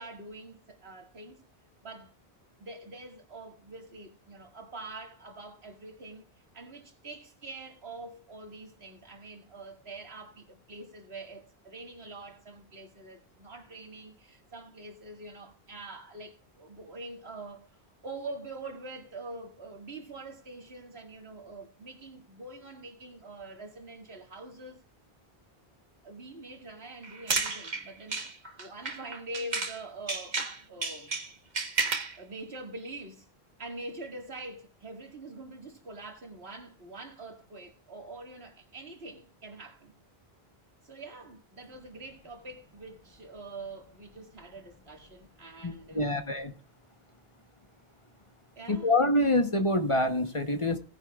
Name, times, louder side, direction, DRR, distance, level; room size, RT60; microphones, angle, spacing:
voice 1, 0.0-1.4 1.8-2.1 2.6-6.3 6.5-17.7 18.0-24.8 26.0-30.4 30.7-31.2 32.2-33.3 33.6-39.9 40.8-46.0 48.6-49.0, right 2 dB, 80° right, 2.2 m, -44 dB
sound 1, 27.0-29.8 30.1-32.2, right 4 dB, 45° right, 1.3 m, -32 dB
voice 2, 45.6-46.5 48.7-50.8, left 1 dB, 30° left, 0.9 m, -26 dB
18.5 x 9.9 x 2.3 m
omnidirectional pair, 1.0 m